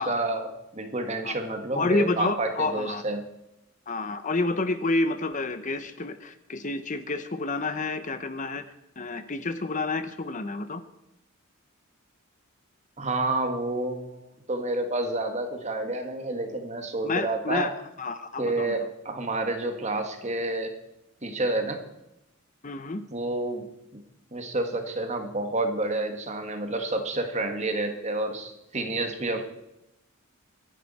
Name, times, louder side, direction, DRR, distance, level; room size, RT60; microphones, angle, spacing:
voice 1, 0.0-3.2 13.0-14.2 14.5-17.7 18.4-20.7 21.2-21.8 23.1-23.7 23.9-24.0 24.3-29.4, right 2 dB, 30° right, 6 dB, 1.6 m, -29 dB
voice 2, 1.7-3.0 3.9-8.6 9.0-10.8 17.0-17.7 18.0-18.8 22.6-23.0, left 3 dB, 35° left, 10 dB, 0.8 m, -29 dB
25.5 x 10.5 x 4.2 m, 0.89 s
head